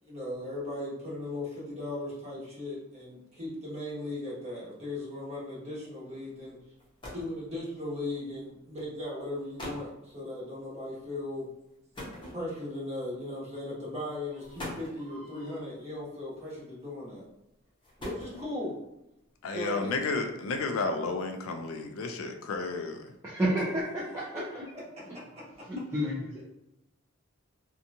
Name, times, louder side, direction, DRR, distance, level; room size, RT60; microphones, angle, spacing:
voice 1, 0.0-6.6 7.1-11.5 12.3-17.2 18.0-18.8 19.5-19.9, left 1 dB, 30° right, -7 dB, 1.0 m, -37 dB
sound 1, 6.4-6.5 6.8-7.4 8.4-8.6 9.2-9.3 9.6-9.9 11.9-12.8 13.7-13.9 14.4-15.1 16.3-16.8 17.6-18.7, left 1 dB, 25° left, 0.7 m, -42 dB
voice 2, 15.1-15.5 23.2-23.8 24.1-24.4 25.7-26.4, equal, 15° right, -8 dB, 0.4 m, -30 dB
voice 3, 19.4-23.1, left 3 dB, 80° left, 5 dB, 0.4 m, -32 dB
2.8 x 2.3 x 2.6 m, 0.89 s
head